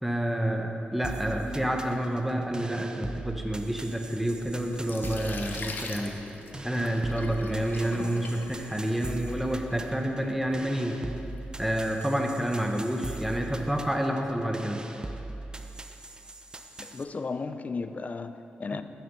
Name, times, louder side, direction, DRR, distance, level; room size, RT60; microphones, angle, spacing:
voice 1, 0.0-6.2 6.6-11.0 11.6-14.8, right 1 dB, 5° right, 1.0 m, -29 dB
sound 1, 1.0-17.0, right 2 dB, 20° right, 0.6 m, -41 dB
Sink (filling or washing), 4.1-12.9, left 3 dB, 60° left, 0.8 m, -44 dB
voice 2, 16.8-18.8, left 4 dB, 40° left, 0.4 m, -34 dB
9.1 x 7.2 x 5.5 m
cardioid pair, 70°, 4 cm